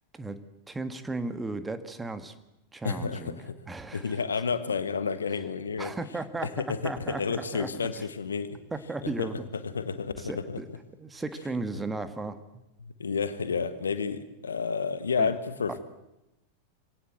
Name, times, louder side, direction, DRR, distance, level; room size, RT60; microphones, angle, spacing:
voice 1, 0.7-2.3 2.7-4.2 5.8-8.0 8.7-9.4 10.2-10.7 11.0-12.4 15.2-15.3 15.7-15.8, right 3 dB, 10° right, 10 dB, 1.6 m, -35 dB
voice 2, 2.8-3.5 3.9-5.9 6.4-8.6 9.2-10.6 12.8-15.8, left 5 dB, 70° left, 13 dB, 1.4 m, -31 dB
24.5 x 17.5 x 7.9 m, 0.93 s
figure-of-eight pair, 90°, 0 cm